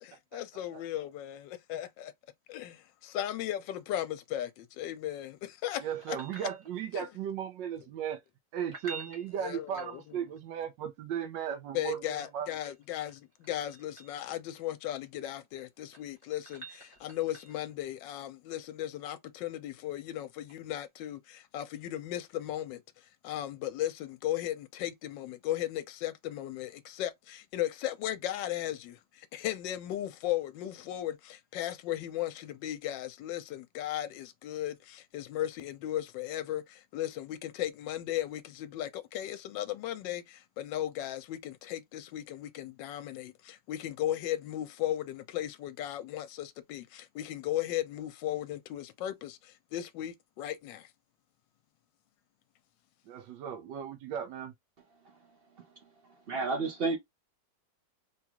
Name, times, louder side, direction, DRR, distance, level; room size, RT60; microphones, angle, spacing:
voice 1, 0.0-2.1 2.5-6.5 6.9-7.1 9.4-10.2 11.7-22.8 23.2-50.9, left 12 dB, 85° left, 1.3 m, -36 dB
voice 2, 5.8-8.2 8.5-12.5 53.1-54.5, right 9 dB, 80° right, 1.3 m, -36 dB
sound 1, 5.9-7.1 8.6-10.4 12.6-14.2 15.6-17.7 20.5-20.6, right 3 dB, 20° right, 0.9 m, -49 dB
voice 3, 56.1-57.0, right 3 dB, 55° right, 0.6 m, -31 dB
3.7 x 2.3 x 2.8 m
omnidirectional pair, 2.0 m